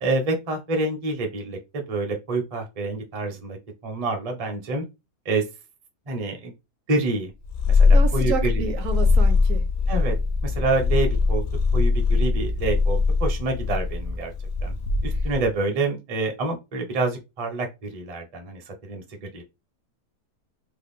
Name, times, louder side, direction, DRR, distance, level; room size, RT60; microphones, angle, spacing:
voice 1, 0.0-3.6 3.8-4.8 5.2-5.4 6.1-6.5 6.9-7.3 7.7-8.7 9.9-10.2 10.4-11.4 11.7-14.3 14.6-14.7 15.0-19.4, right 2 dB, 40° right, 0.5 m, -27 dB
Purr, 7.4-15.5, left 4 dB, 65° left, 0.6 m, -21 dB
voice 2, 7.9-9.7, right 4 dB, 60° right, 1.0 m, -30 dB
3.4 x 2.1 x 3.6 m
omnidirectional pair, 1.8 m